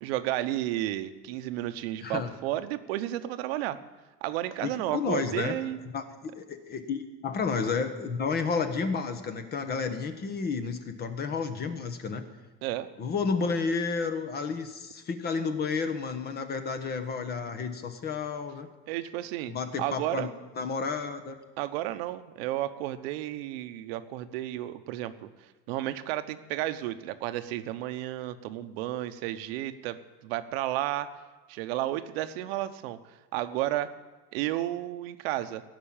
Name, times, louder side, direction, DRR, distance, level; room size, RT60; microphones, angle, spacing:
voice 1, 0.0-3.8 4.2-5.8 12.6-12.9 18.9-19.5 19.8-20.3 21.6-25.3 25.7-31.1 31.5-33.0 33.3-33.9 34.3-35.6, right 14 dB, 75° right, 10 dB, 1.0 m, -32 dB
voice 2, 2.0-2.3 4.6-5.6 5.9-12.2 13.0-18.7 19.5-20.3 20.6-21.4, left 5 dB, 30° left, 9 dB, 1.3 m, -31 dB
16.5 x 6.1 x 8.9 m, 1.2 s
supercardioid pair, 135°, 31 cm